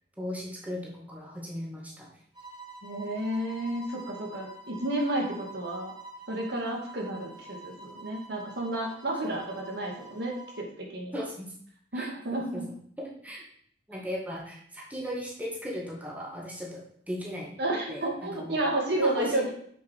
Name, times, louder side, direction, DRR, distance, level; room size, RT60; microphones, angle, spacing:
voice 1, 0.2-2.1 9.2-9.4 11.1-11.5 11.9-12.6 13.0-13.4 13.9-17.5 17.9-18.6 18.9-19.5, equal, 10° right, -3 dB, 1.9 m, -37 dB
sound 1, 2.3-10.7, right 2 dB, 25° right, 2.9 m, -47 dB
voice 2, 2.8-5.9 6.3-11.2 11.9-12.6 17.6-19.5, right 1 dB, 60° right, 0 dB, 2.1 m, -31 dB
7.5 x 6.9 x 4.7 m, 0.63 s
head